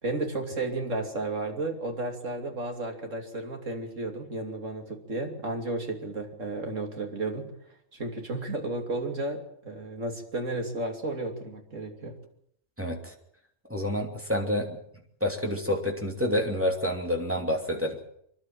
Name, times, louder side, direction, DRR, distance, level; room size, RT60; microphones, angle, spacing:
voice 1, 0.0-7.5 7.9-12.2, right 2 dB, 80° right, 3 dB, 3.3 m, -33 dB
voice 2, 12.8-13.1 13.7-14.8 15.2-18.0, left 1 dB, 10° right, 1 dB, 2.8 m, -28 dB
26.5 x 12.0 x 9.1 m, 0.71 s
omnidirectional pair, 1.3 m